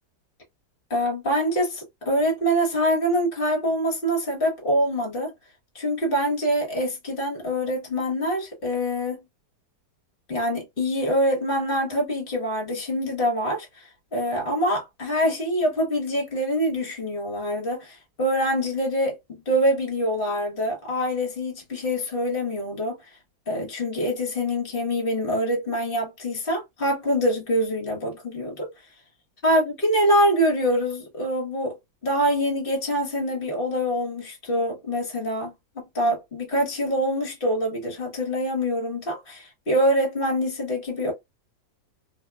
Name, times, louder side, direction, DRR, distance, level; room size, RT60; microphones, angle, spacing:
voice 1, 0.9-5.3 5.7-9.2 10.3-19.2 19.5-23.0 23.5-28.7 29.4-31.8 32.0-41.1, equal, 35° left, 1.1 m, -25 dB
2.9 x 2.2 x 2.2 m
omnidirectional pair, 1.9 m